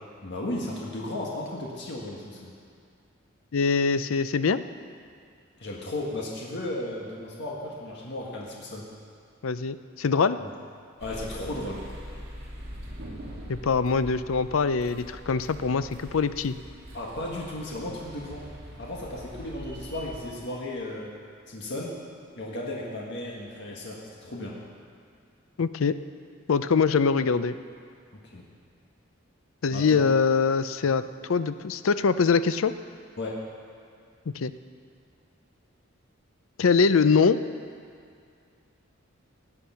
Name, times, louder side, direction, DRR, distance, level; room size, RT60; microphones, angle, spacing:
voice 1, 0.2-2.5 5.6-8.9 10.4-10.5 11.0-11.9 16.9-18.5 18.8-21.1 21.5-22.0 22.4-24.5 28.1-28.4 29.7-30.0 33.2-33.5, left 1 dB, 60° left, -3 dB, 1.7 m, -35 dB
voice 2, 3.5-4.6 9.4-10.4 13.5-16.6 25.6-26.0 26.5-27.6 29.6-31.0 31.3-32.7 34.3-34.5 36.6-37.4, left 5 dB, 80° left, 13 dB, 0.5 m, -23 dB
sound 1, 11.0-20.3, equal, 55° right, 2.9 m, -43 dB
17.0 x 9.8 x 5.7 m, 2.3 s
head